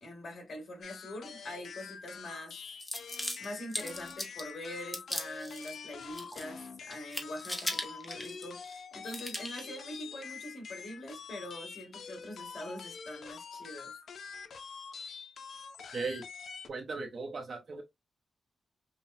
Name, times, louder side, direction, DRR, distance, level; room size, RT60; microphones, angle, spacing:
voice 1, 0.0-2.6 3.4-13.9, left 1 dB, 50° left, 2.2 m, -43 dB
sound 1, 0.8-16.7, left 6 dB, 65° left, 0.6 m, -46 dB
sound 2, 2.8-4.5 4.9-5.7 6.0-6.7 6.9-8.7 9.1-9.7, left 1 dB, 5° left, 0.8 m, -38 dB
voice 2, 15.9-16.2 16.7-17.8, right 4 dB, 45° right, 0.7 m, -37 dB
5.6 x 2.2 x 2.6 m
wide cardioid pair, 175°, 0 cm